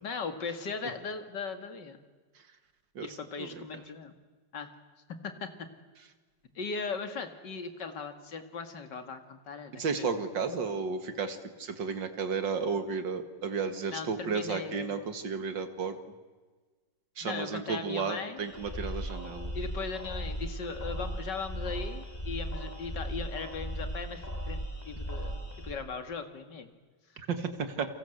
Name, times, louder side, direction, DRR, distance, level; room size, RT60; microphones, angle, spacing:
voice 1, 0.0-2.0 3.0-4.2 4.5-4.7 5.1-5.7 6.6-10.1 13.9-14.9 17.2-18.4 19.5-26.7, left 5 dB, 70° left, 7 dB, 2.7 m, -38 dB
voice 2, 3.0-3.8 9.8-16.0 17.2-19.5 27.2-27.9, right 5 dB, 80° right, 8 dB, 2.6 m, -33 dB
sound 1, 18.4-25.7, right 1 dB, 20° left, 4.4 m, -37 dB
29.5 x 24.0 x 8.0 m, 1.3 s
omnidirectional pair, 2.0 m